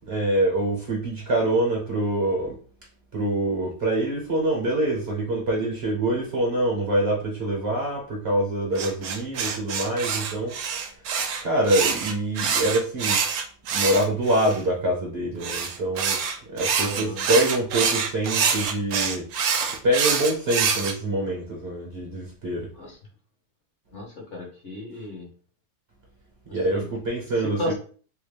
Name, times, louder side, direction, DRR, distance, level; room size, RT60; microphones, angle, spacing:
voice 1, 0.1-2.6 3.1-10.6 11.4-13.2 13.7-16.2 16.5-19.3 19.7-22.7 26.5-27.7, right 1 dB, 45° right, -1 dB, 0.9 m, -25 dB
sound 1, 8.8-14.6 15.4-20.9, right 6 dB, 75° right, 1.0 m, -26 dB
voice 2, 16.8-17.2 22.7-23.0 23.9-25.3 26.5-26.9 27.4-27.7, left 1 dB, 50° left, -1 dB, 1.2 m, -34 dB
3.6 x 2.1 x 3.2 m, 0.41 s
omnidirectional pair, 1.7 m